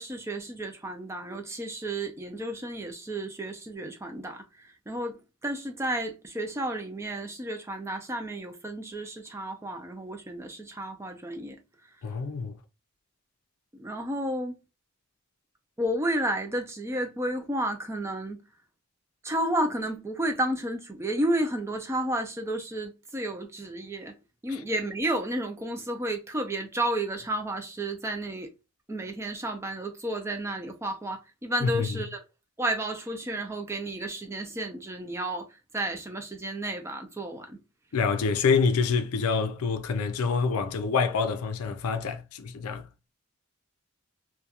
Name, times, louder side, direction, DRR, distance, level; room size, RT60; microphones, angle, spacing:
voice 1, 0.0-11.6 13.7-14.6 15.8-18.4 19.2-24.1 24.4-28.5 28.9-32.2 32.6-35.5 35.7-37.6, right 1 dB, 10° right, 0.4 m, -32 dB
voice 2, 12.0-12.6 24.5-24.6 31.6-32.0 37.9-42.9, left 5 dB, 85° left, 0.4 m, -27 dB
2.4 x 2.2 x 2.7 m
head